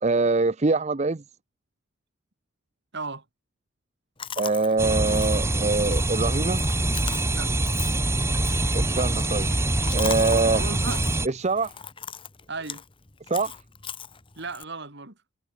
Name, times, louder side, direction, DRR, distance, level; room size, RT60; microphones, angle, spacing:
voice 1, 0.0-1.2 4.4-6.6 8.7-9.5 9.9-10.6 10.9-11.0 11.2-11.7 13.3-13.6, right 3 dB, 30° right, 0.6 m, -24 dB
voice 2, 2.9-3.2 7.3-7.5 10.5-11.0 12.5-12.8 14.4-15.1, right 3 dB, 55° right, 2.8 m, -35 dB
Chewing mastication, 4.2-14.6, left 7 dB, 25° left, 1.3 m, -40 dB
sound 1, 4.8-11.3, right 2 dB, 10° right, 1.0 m, -24 dB
head